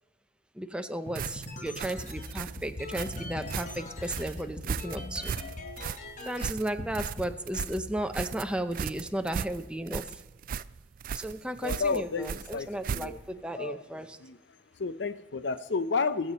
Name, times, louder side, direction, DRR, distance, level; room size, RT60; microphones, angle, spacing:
voice 1, 0.6-5.4 6.3-10.0 11.1-14.2, right 1 dB, 5° right, 8 dB, 0.6 m, -34 dB
sound 1, 1.1-6.5 6.8-7.2 7.6-9.0, left 2 dB, 45° left, 1.4 m, -40 dB
sound 2, 1.1-13.4, right 7 dB, 50° right, 0.3 m, -37 dB
voice 2, 11.6-13.2 13.5-14.4 14.8-16.3, left 4 dB, 85° left, 13 dB, 0.6 m, -32 dB
20.5 x 7.4 x 4.1 m, 1.2 s
head